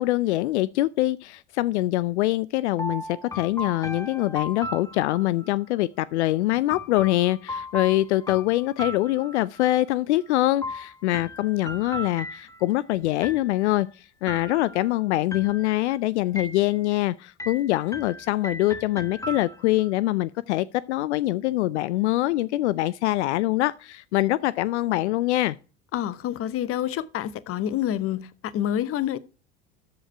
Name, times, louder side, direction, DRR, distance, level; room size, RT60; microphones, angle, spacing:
voice 1, 0.0-25.6, left 16 dB, 75° left, 0.5 m, -24 dB
sound 1, 2.8-5.5 6.7-9.7 10.6-12.8 13.2-13.8 14.3-14.9 15.3-15.9 16.4-17.0 17.4-19.9, left 1 dB, 10° left, 1.2 m, -37 dB
voice 2, 25.9-29.2, left 11 dB, 40° left, 0.8 m, -28 dB
13.5 x 5.0 x 4.4 m
hypercardioid pair, 75°, 34 cm